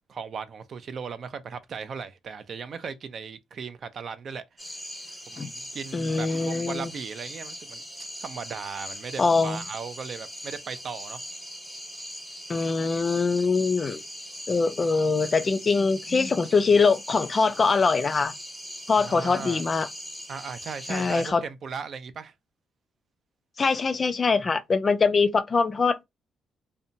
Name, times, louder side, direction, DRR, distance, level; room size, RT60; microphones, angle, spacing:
voice 1, 0.1-4.4 5.3-7.8 8.2-11.2 18.9-19.6 20.3-22.3, right 6 dB, 55° right, 0.4 m, -37 dB
sound 1, 4.6-21.3, equal, 5° right, 1.0 m, -40 dB
voice 2, 5.9-6.9 9.2-9.6 12.5-14.0 14.5-18.3 18.9-19.9 20.9-21.4 23.6-26.0, left 4 dB, 35° left, 0.3 m, -23 dB
2.6 x 2.2 x 2.6 m
cardioid pair, 90°, 0 cm